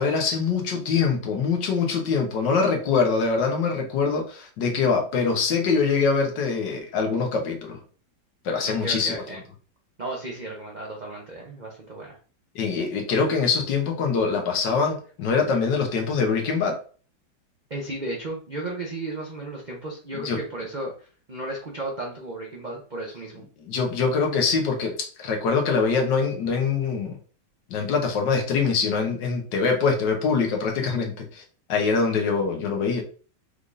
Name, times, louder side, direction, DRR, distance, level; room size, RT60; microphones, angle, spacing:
voice 1, 0.0-7.8 8.4-9.1 12.5-16.8 20.2-20.4 23.6-27.2 27.7-31.4 31.7-33.0, left 5 dB, 70° left, 3 dB, 1.5 m, -24 dB
voice 2, 8.6-9.4 10.0-12.2 17.7-23.4, right 2 dB, 75° right, -2 dB, 0.4 m, -34 dB
5.2 x 3.5 x 2.5 m, 0.40 s
omnidirectional pair, 2.1 m